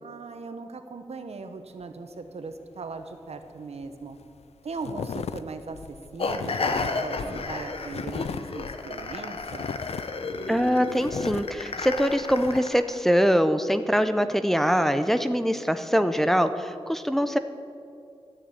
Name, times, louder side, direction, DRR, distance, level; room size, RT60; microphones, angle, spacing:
voice 1, 0.0-4.2 4.6-9.8, right 4 dB, 85° right, 7 dB, 1.0 m, -39 dB
sound 1, 3.8-3.9 4.1-4.4 4.8-12.6, left 7 dB, 85° left, 0.4 m, -37 dB
sound 2, 6.2-13.0, left 3 dB, 65° left, 0.8 m, -32 dB
voice 2, 10.5-17.4, equal, 5° left, 9 dB, 0.5 m, -23 dB
13.0 x 6.8 x 8.8 m, 2.5 s
wide cardioid pair, 105°, 10 cm